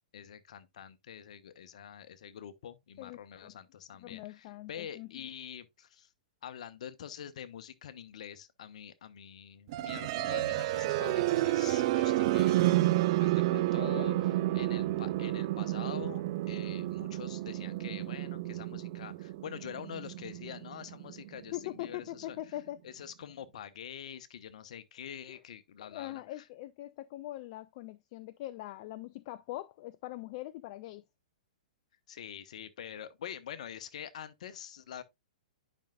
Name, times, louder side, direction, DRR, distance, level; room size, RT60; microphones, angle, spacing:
voice 1, 0.1-6.1 6.4-12.6 13.2-16.2 16.5-22.4 22.8-26.5 32.1-35.0, left 9 dB, 60° left, 1.0 m, -45 dB
voice 2, 3.0-3.6 4.0-5.3 13.5-14.2 21.5-22.8 25.3-25.4 25.8-31.0, left 16 dB, 40° left, 0.4 m, -42 dB
sound 1, 9.7-21.6, right 16 dB, 45° right, 0.5 m, -30 dB
10.5 x 5.4 x 2.4 m
figure-of-eight pair, 115°, 4 cm